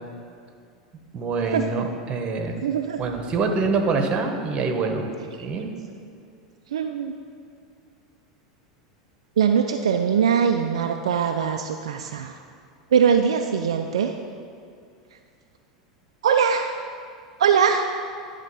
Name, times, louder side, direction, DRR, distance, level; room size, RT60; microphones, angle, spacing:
voice 1, 1.1-2.6 3.0-5.1 5.4-5.7, right 4 dB, 35° right, 4 dB, 1.1 m, -25 dB
voice 2, 2.6-3.0 6.7-7.1 9.4-12.4 12.9-14.1 16.2-16.8 17.4-17.9, right 7 dB, 75° right, 5 dB, 0.3 m, -21 dB
10.5 x 3.6 x 5.5 m, 2.3 s
hypercardioid pair, 85°, 3 cm